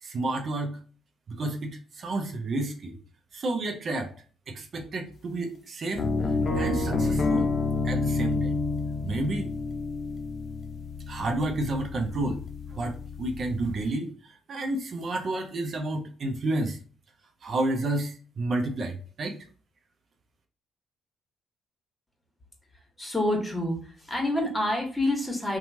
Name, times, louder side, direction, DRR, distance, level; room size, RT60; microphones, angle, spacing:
voice 1, 0.0-0.8 1.3-2.9 3.3-4.1 4.5-7.5 7.8-8.6 9.0-9.5 11.1-12.4 12.7-16.8 17.4-19.4, right 2 dB, 55° right, 4 dB, 0.5 m, -31 dB
sound 1, 6.0-13.9, left 3 dB, 50° left, 0.5 m, -29 dB
voice 2, 23.0-25.6, left 1 dB, 15° left, 0 dB, 1.2 m, -27 dB
2.8 x 2.3 x 2.7 m, 0.40 s
hypercardioid pair, 50°, 0 cm